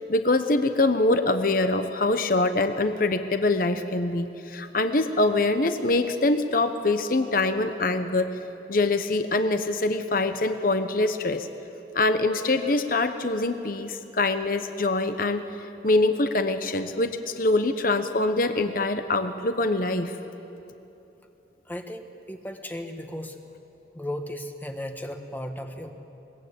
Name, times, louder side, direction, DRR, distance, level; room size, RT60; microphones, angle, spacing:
voice 1, 0.1-8.4 8.7-11.5 11.9-15.4 15.8-20.2, left 2 dB, 50° left, 9 dB, 0.9 m, -24 dB
voice 2, 21.7-23.4 23.9-25.9, left 1 dB, 10° left, 5 dB, 1.2 m, -35 dB
22.0 x 21.5 x 8.6 m, 2.9 s
head